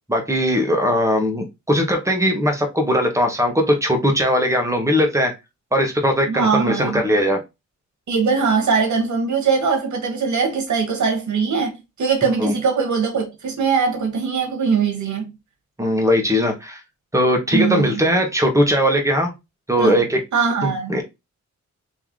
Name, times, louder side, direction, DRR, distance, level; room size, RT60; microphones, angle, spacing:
voice 1, 0.1-5.3 5.7-7.4 12.4-12.5 15.8-16.8 17.1-19.3 19.7-20.2 20.6-21.0, equal, 10° right, 1.1 m, -19 dB
voice 2, 6.3-7.0 8.1-15.3 17.5-18.0 19.8-20.0 20.3-21.0, right 5 dB, 75° right, 1.3 m, -21 dB
3.4 x 2.9 x 3.7 m
wide cardioid pair, 115°, 30 cm